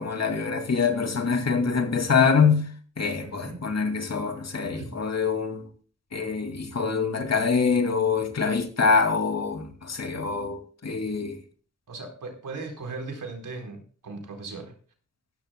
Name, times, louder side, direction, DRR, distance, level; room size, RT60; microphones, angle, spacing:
voice 1, 0.0-2.7 3.0-5.7 6.1-11.4, left 5 dB, 55° left, 2.5 m, -25 dB
voice 2, 3.2-3.6 4.6-5.0 11.9-14.7, right 3 dB, 80° right, 4.2 m, -38 dB
16.0 x 14.0 x 2.2 m
wide cardioid pair, 90°, 31 cm